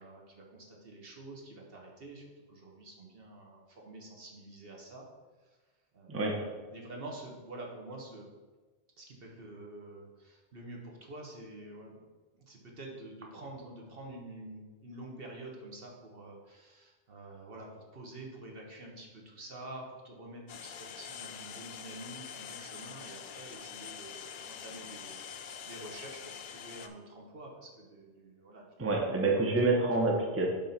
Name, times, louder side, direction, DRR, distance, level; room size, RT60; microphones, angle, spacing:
voice 1, 0.0-5.1 5.4-5.6 5.9-8.3 9.0-12.1 12.3-28.7 30.2-30.3, right 2 dB, 55° right, 0 dB, 1.4 m, -48 dB
voice 2, 6.1-6.4 28.8-30.5, right 2 dB, 15° right, 0 dB, 0.8 m, -27 dB
sound 1, 20.5-26.9, left 8 dB, 55° left, 0.6 m, -45 dB
7.5 x 3.7 x 5.8 m, 1.3 s
omnidirectional pair, 1.2 m